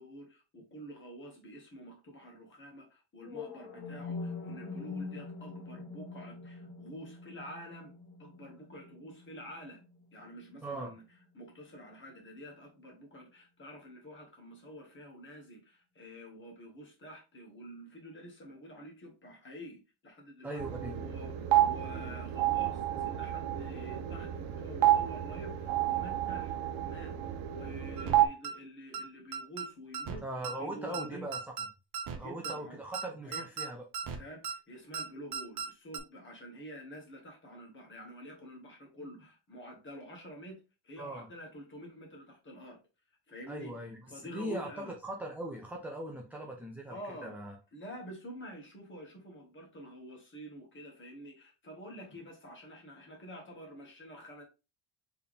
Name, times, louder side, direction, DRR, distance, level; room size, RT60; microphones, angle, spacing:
voice 1, 0.0-7.9 8.2-9.8 10.1-11.0 11.3-20.6 20.9-21.3 21.6-26.5 26.9-27.1 27.5-30.3 30.6-31.3 32.1-32.8 33.2-33.5 34.1-42.8 43.3-44.9 46.9-47.4 47.7-54.4, equal, 25° left, 1.6 m, -48 dB
sound 1, 3.2-11.2, left 4 dB, 85° left, 1.6 m, -44 dB
voice 2, 10.6-10.9 20.4-21.0 30.2-31.7 32.1-33.8 41.0-41.3 43.5-47.6, right 1 dB, 5° right, 0.4 m, -40 dB
sound 2, 20.6-28.3, right 13 dB, 75° right, 0.9 m, -30 dB
sound 3, 28.0-28.2 28.4-28.5 28.9-29.0 29.3-29.7 29.9-30.2 30.4-30.5 30.9-31.0 31.3-31.7 31.9-32.2 32.4-32.5 32.9-33.0 33.3-33.7 33.9-34.2 34.4-34.5 34.9-35.0 35.3-35.7 35.9-36.0, right 6 dB, 50° right, 0.9 m, -37 dB
4.6 x 3.4 x 3.3 m
cardioid pair, 165°, 47 cm